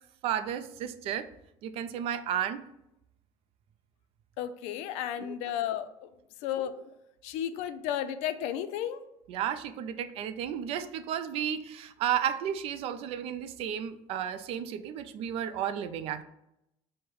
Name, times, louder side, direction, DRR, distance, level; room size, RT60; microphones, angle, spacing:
voice 1, 0.2-1.3 1.6-2.6 5.2-5.3 9.3-16.2, right 9 dB, 60° right, 12 dB, 0.4 m, -33 dB
voice 2, 4.4-6.1 6.4-6.9 7.2-9.0, left 10 dB, 75° left, 11 dB, 0.4 m, -33 dB
4.5 x 2.1 x 4.7 m, 0.83 s
cardioid pair, 120°, 11 cm